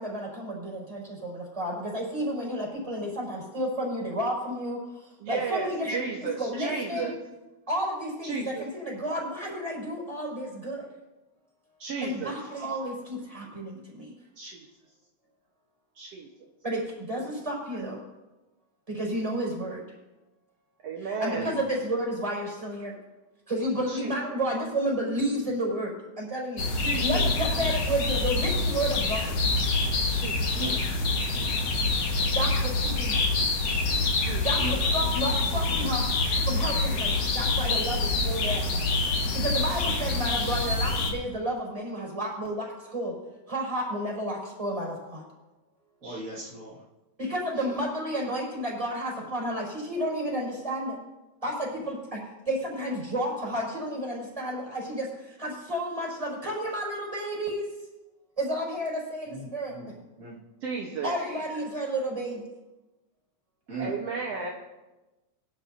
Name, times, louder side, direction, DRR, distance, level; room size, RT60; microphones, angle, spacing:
voice 1, 0.0-6.0 6.4-7.1 7.7-10.9 12.0-14.1 16.6-18.0 18.9-19.8 21.0-22.9 23.5-26.6 27.0-29.3 32.3-33.3 34.4-36.1 36.4-38.6 39.3-43.2 43.5-45.2 47.2-51.0 51.4-57.7 58.4-59.8 61.0-62.5, right 1 dB, 10° right, -3 dB, 5.6 m, -31 dB
voice 2, 5.2-7.1 8.2-8.7 11.8-12.4 14.4-14.7 16.0-16.3 17.2-17.3 20.8-21.5 23.9-24.1 26.7-27.3 30.0-30.4 32.1-32.3 34.3-34.5 39.7-39.8 46.0-46.2 47.7-47.8 60.6-61.2 63.8-64.5, right 5 dB, 65° right, -2 dB, 2.1 m, -34 dB
sound 1, 26.6-41.1, left 3 dB, 60° left, 2.6 m, -26 dB
voice 3, 27.2-27.6 30.5-32.0 34.6-34.8 46.0-46.8 59.3-59.9 60.2-60.4 63.7-64.0, right 2 dB, 30° right, -9 dB, 2.1 m, -39 dB
21.5 x 12.0 x 2.8 m, 1.1 s
omnidirectional pair, 3.3 m